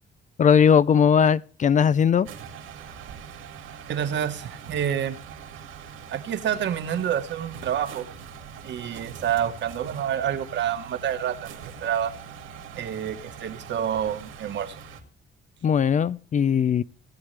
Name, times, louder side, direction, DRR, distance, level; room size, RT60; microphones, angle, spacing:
voice 1, 0.4-2.3 15.6-16.8, left 7 dB, 40° left, 0.5 m, -19 dB
sound 1, 2.2-15.0, right 7 dB, 85° right, 2.3 m, -42 dB
voice 2, 3.9-5.1 6.1-8.1 8.6-12.1 12.7-14.8, right 9 dB, 65° right, 1.3 m, -28 dB
19.0 x 8.0 x 3.3 m
cardioid pair, 90°, 20 cm